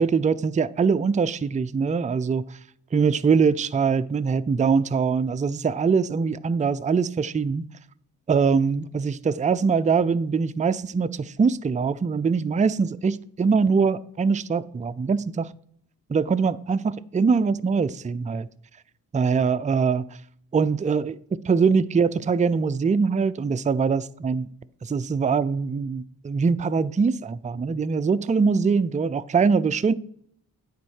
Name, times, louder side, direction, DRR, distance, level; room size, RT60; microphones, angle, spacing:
voice 1, 0.0-2.4 2.9-7.7 8.3-15.5 16.1-18.5 19.1-20.0 20.5-21.2 21.4-24.5 24.8-29.9, right 5 dB, 20° right, 0.4 m, -23 dB
9.3 x 4.3 x 6.4 m
cardioid pair, 55°, 38 cm